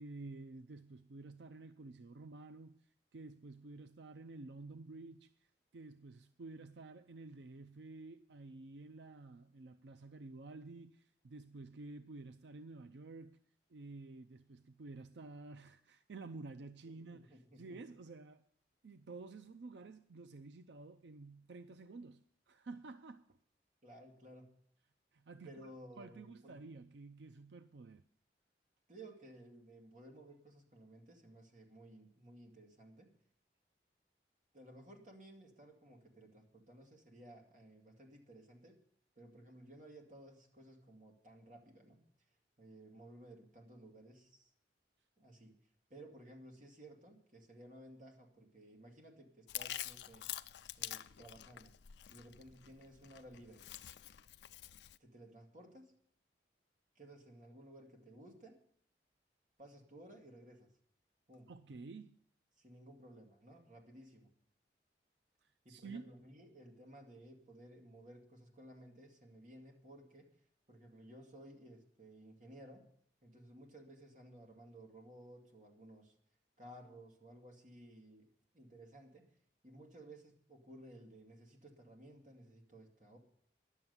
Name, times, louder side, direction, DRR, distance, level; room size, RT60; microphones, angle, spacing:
voice 1, 0.0-2.8 3.1-5.3 5.7-13.4 13.7-18.4 18.8-23.3 25.1-25.7 26.0-28.0 61.5-62.2 65.4-66.0, right 3 dB, 85° right, 0.5 m, -51 dB
voice 2, 16.8-17.8 23.8-24.5 25.4-26.6 28.9-33.1 34.5-38.8 39.2-42.0 42.6-44.5 45.2-45.5 45.9-50.3 50.8-51.7 52.1-53.6 55.0-55.9 56.9-58.6 59.6-60.7 61.3-61.5 62.6-64.3 65.6-70.3 70.7-72.9 73.2-76.1 76.6-78.3 78.5-79.3 79.6-83.2, right 1 dB, 45° right, 2.5 m, -56 dB
Chewing mastication, 49.5-55.0, left 13 dB, 80° left, 0.4 m, -47 dB
10.5 x 7.5 x 9.6 m
head